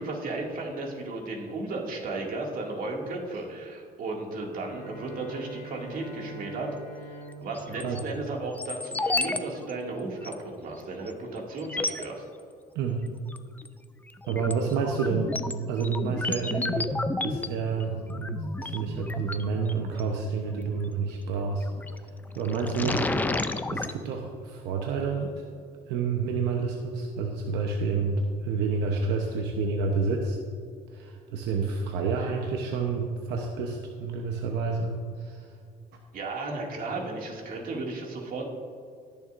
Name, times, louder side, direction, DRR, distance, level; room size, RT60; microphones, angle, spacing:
voice 1, 0.0-6.7 7.0-12.2 36.1-38.4, right 2 dB, 55° right, -1 dB, 2.3 m, -34 dB
Bowed string instrument, 4.6-9.0, right 1 dB, 50° left, 2.7 m, -44 dB
sound 1, 7.5-8.0 8.6-9.4 9.7-9.8 10.2-10.3 11.1-11.2 11.6-12.1 13.3-13.7 14.1-20.0 21.6-22.0 22.4-23.9, left 2 dB, 10° left, 0.4 m, -32 dB
voice 2, 12.7-13.1 14.3-15.4 15.7-16.9 17.2-21.7 22.3-23.1 23.7-25.3 25.9-30.4 30.9-34.9 35.2-35.5, right 4 dB, 90° right, 2 dB, 0.9 m, -29 dB
19.0 x 7.0 x 2.6 m, 2.3 s
cardioid pair, 110°, 17 cm